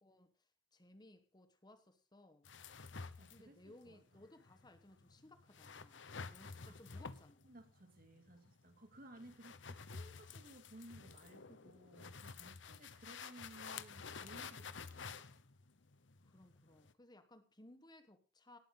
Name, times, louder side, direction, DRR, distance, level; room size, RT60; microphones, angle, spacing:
voice 1, 0.0-2.5 3.3-7.4 12.7-12.9 16.2-18.6, left 1 dB, 20° left, 1.3 m, -62 dB
sound 1, 2.4-16.9, left 5 dB, 75° left, 1.0 m, -51 dB
voice 2, 3.2-4.0 6.7-7.1 7.4-15.2, right 1 dB, 50° right, 2.7 m, -59 dB
18.0 x 9.6 x 3.8 m
head